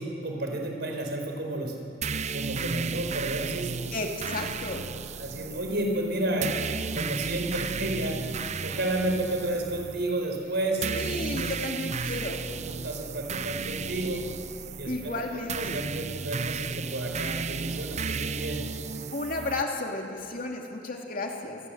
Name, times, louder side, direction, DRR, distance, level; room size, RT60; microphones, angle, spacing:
voice 1, 0.0-1.7 2.3-3.7 5.2-6.5 6.9-8.2 8.6-11.5 12.6-14.2 14.8-15.2 15.5-18.6, right 1 dB, 65° right, 2 dB, 4.7 m, -31 dB
sound 1, 2.0-19.6, right 5 dB, 40° right, 0.6 m, -34 dB
voice 2, 3.9-4.9 10.9-12.4 14.9-15.8 19.1-21.6, left 2 dB, 50° left, 1 dB, 2.5 m, -33 dB
28.0 x 21.5 x 7.9 m, 2.7 s
head